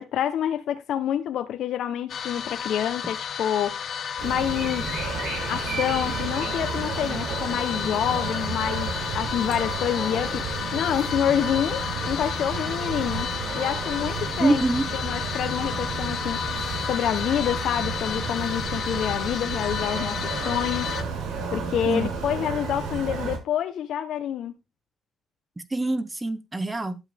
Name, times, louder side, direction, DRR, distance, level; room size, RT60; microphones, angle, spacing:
voice 1, 0.0-3.9 4.2-4.9 5.5-10.4 10.7-14.6 14.9-16.4 16.9-20.2 20.4-20.9 21.5-24.5, left 10 dB, 75° left, 1.0 m, -27 dB
sound 1, 2.1-21.0, left 7 dB, 60° left, 1.5 m, -32 dB
sound 2, 4.2-23.4, right 5 dB, 80° right, 5.7 m, -32 dB
voice 2, 14.4-14.9 21.8-22.1 25.7-27.0, right 2 dB, 15° right, 1.5 m, -24 dB
12.0 x 7.9 x 3.6 m
cardioid pair, 90°, 0 cm